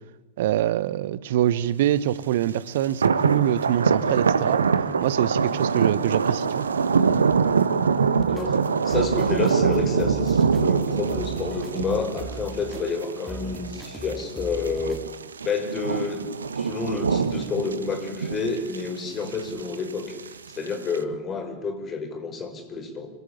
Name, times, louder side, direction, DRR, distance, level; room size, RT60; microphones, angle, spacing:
voice 1, 0.4-4.6 5.0-6.7, right 12 dB, 55° right, 1.1 m, -24 dB
sound 1, 2.4-2.5 2.8-21.0, right 5 dB, 70° right, 1.4 m, -24 dB
sound 2, 8.2-15.1, right 2 dB, 5° right, 2.4 m, -39 dB
voice 2, 8.8-15.1 15.4-23.1, left 4 dB, 25° left, 6.2 m, -29 dB
26.5 x 22.0 x 8.7 m
figure-of-eight pair, 90°, 0 cm